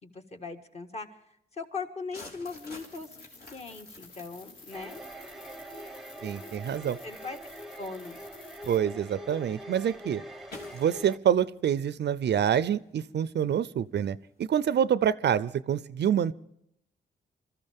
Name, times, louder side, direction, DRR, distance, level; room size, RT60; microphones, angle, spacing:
voice 1, 0.0-1.1 1.6-3.1 3.5-5.0 7.0-7.4 7.8-8.2, left 4 dB, 35° left, 4 dB, 1.7 m, -39 dB
sound 1, 2.1-14.6, left 2 dB, 50° left, 3.5 m, -54 dB
sound 2, 2.4-8.8, left 3 dB, 80° left, 4.2 m, -52 dB
sound 3, 4.7-11.2, equal, ahead, 1.0 m, -44 dB
voice 2, 6.2-7.0 8.7-10.2 10.7-16.3, right 9 dB, 65° right, 17 dB, 0.5 m, -26 dB
26.0 x 14.0 x 3.6 m, 0.74 s
wide cardioid pair, 125°, 19 cm